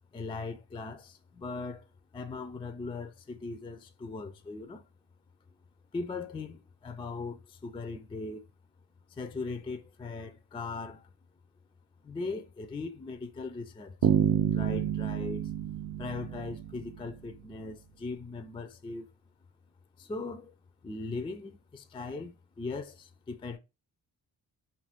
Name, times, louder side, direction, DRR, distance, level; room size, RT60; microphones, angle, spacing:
voice 1, 0.1-1.8 2.1-4.9 5.9-8.4 9.1-11.1 12.0-14.0 14.5-15.5 16.0-19.1 20.0-20.5 20.8-23.6, left 3 dB, 15° left, 0.3 m, -39 dB
sound 1, 14.0-17.1, right 10 dB, 50° right, 0.5 m, -28 dB
2.6 x 2.3 x 3.4 m
cardioid pair, 55°, 45 cm